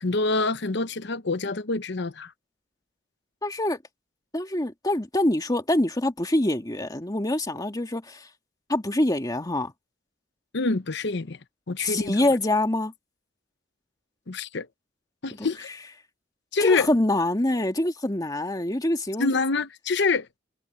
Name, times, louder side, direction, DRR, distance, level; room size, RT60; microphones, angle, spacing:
voice 1, 0.0-2.3 10.5-11.4 11.7-12.3 14.3-14.7 15.2-15.7 16.5-16.9 19.2-20.3, left 3 dB, 65° left, 0.9 m, -26 dB
voice 2, 3.4-3.8 4.3-8.3 8.7-9.7 11.8-12.9 15.4-15.5 16.6-19.3, left 1 dB, 20° left, 2.1 m, -25 dB
head